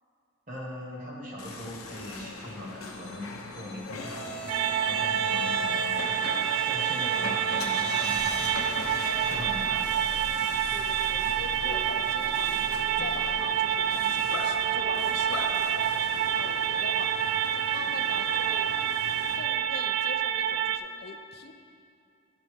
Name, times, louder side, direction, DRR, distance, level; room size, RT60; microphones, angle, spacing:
voice 1, 0.5-4.3 4.9-6.3 6.7-8.5 9.3-9.8, left 1 dB, 40° right, -2 dB, 1.3 m, -40 dB
sound 1, 1.4-19.4, left 2 dB, 80° left, 0.8 m, -38 dB
sound 2, 4.5-20.8, right 9 dB, 85° right, 0.4 m, -28 dB
voice 2, 10.4-18.7 19.1-21.5, left 4 dB, 50° left, 6 dB, 0.5 m, -43 dB
11.0 x 4.0 x 5.0 m, 2.5 s
head